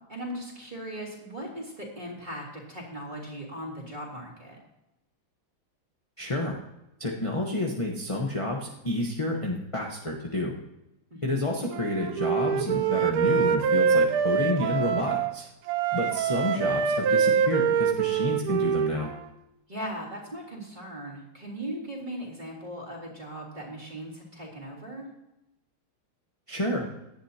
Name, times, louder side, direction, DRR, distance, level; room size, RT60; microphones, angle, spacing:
voice 1, 0.1-4.6 11.1-11.5 19.7-25.1, right 1 dB, 20° right, -3 dB, 3.5 m, -38 dB
voice 2, 6.2-6.6 7.0-10.5 11.2-15.4 15.9-19.1 26.5-26.9, left 1 dB, 20° left, -1 dB, 0.9 m, -29 dB
Wind instrument woodwind instrument, 11.7-15.3 15.7-19.3, right 7 dB, 85° right, 1.6 m, -25 dB
17.0 x 11.5 x 2.9 m, 0.90 s
omnidirectional pair, 2.3 m